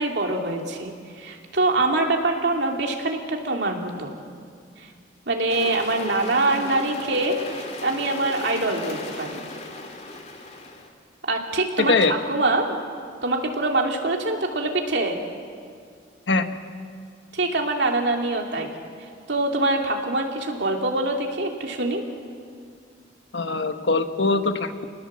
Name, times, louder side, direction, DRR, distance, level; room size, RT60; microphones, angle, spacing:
voice 1, 0.0-4.1 4.8-4.9 5.3-9.4 11.3-11.9 12.3-12.8 13.2-15.2 17.3-18.8 19.3-22.0, right 2 dB, 65° right, 1 dB, 2.9 m, -24 dB
sound 1, 5.5-10.9, left 2 dB, 35° left, 2.3 m, -37 dB
voice 2, 11.8-12.1 16.3-16.5 23.3-24.9, left 3 dB, 75° left, 8 dB, 1.3 m, -22 dB
28.5 x 20.0 x 7.6 m, 2.2 s
head